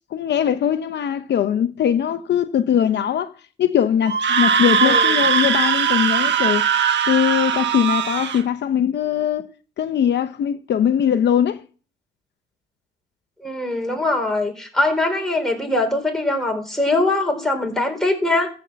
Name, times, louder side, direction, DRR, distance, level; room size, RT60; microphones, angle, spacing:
voice 1, 0.1-3.3 3.6-6.6 7.1-9.5 9.8-11.6, left 9 dB, 60° left, 0.8 m, -20 dB
Screaming, 4.1-8.4, right 7 dB, 65° right, 1.4 m, -19 dB
voice 2, 4.8-5.2 13.4-18.5, left 2 dB, ahead, 4.0 m, -22 dB
14.0 x 5.5 x 7.6 m
cardioid pair, 90°, 20 cm